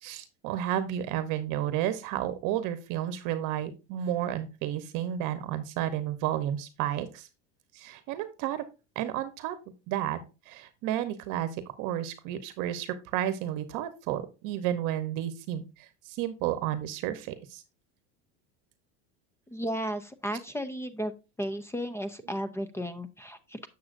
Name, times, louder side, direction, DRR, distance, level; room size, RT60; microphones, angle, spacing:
voice 1, 0.0-7.3 7.7-8.7 9.0-9.6 9.9-10.2 10.5-17.6, right 11 dB, 60° right, 11 dB, 0.9 m, -32 dB
voice 2, 19.5-21.1 21.4-23.7, equal, 5° left, 12 dB, 0.5 m, -34 dB
7.7 x 7.0 x 2.5 m, 0.28 s
supercardioid pair, 135°, 36 cm